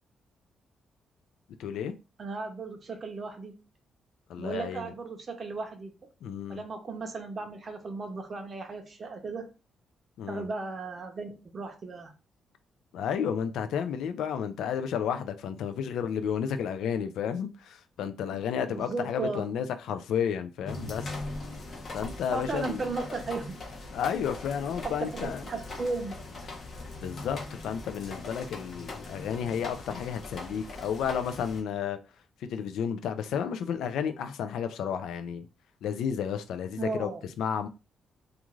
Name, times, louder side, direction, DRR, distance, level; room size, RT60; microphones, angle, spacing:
voice 1, 1.6-1.9 4.3-4.9 6.2-6.6 10.2-10.5 12.9-21.2 21.9-22.8 23.9-25.5 27.0-32.0 32.4-35.5 35.8-37.1 37.4-37.7, left 8 dB, 90° left, 0.3 m, -32 dB
voice 2, 2.2-3.6 4.4-5.9 6.5-9.5 10.3-12.1 18.7-19.5 22.3-23.5 24.8-26.1 36.8-37.3, right 3 dB, 40° right, 0.6 m, -35 dB
sound 1, 20.7-31.6, left 2 dB, 45° left, 0.8 m, -41 dB
2.4 x 2.4 x 3.0 m
cardioid pair, 130°, 0 cm